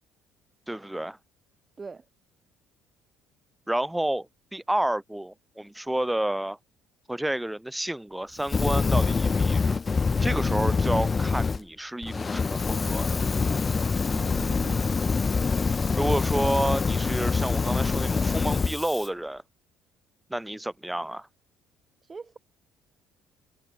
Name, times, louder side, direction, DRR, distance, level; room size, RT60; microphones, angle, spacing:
voice 1, 0.7-1.2 3.7-6.6 7.1-9.8 10.2-13.2 15.9-19.4 20.3-21.3, right 1 dB, 5° right, 1.6 m, -30 dB
Fire, 8.4-11.6 12.0-19.1, left 4 dB, 25° left, 0.3 m, -25 dB
voice 2, 14.1-15.0 22.0-22.4, right 4 dB, 20° right, 1.0 m, -40 dB
cardioid pair, 130°, 0 cm